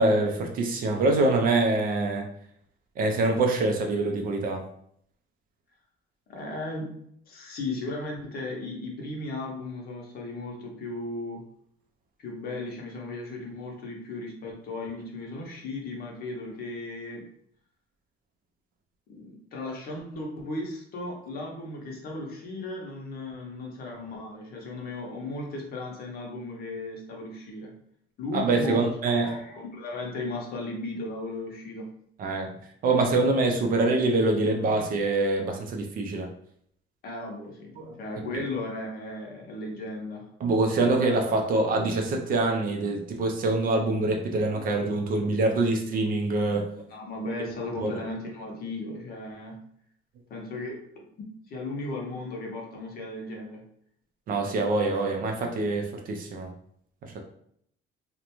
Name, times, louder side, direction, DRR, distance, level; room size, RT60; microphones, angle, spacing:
voice 1, 0.0-2.3 3.0-4.6 28.3-29.3 32.2-32.5 32.8-36.3 37.8-37.9 40.4-46.6 47.8-47.9 54.3-56.5 57.1-57.2, right 2 dB, 45° right, 2 dB, 0.4 m, -25 dB
voice 2, 6.3-6.9 7.3-11.5 12.2-17.2 19.1-27.7 28.2-31.9 37.0-37.7 38.0-40.3 46.9-49.6 50.3-50.8 51.2-53.6, left 2 dB, 50° left, -1 dB, 0.7 m, -36 dB
2.4 x 2.1 x 2.9 m, 0.68 s
cardioid pair, 170°, 21 cm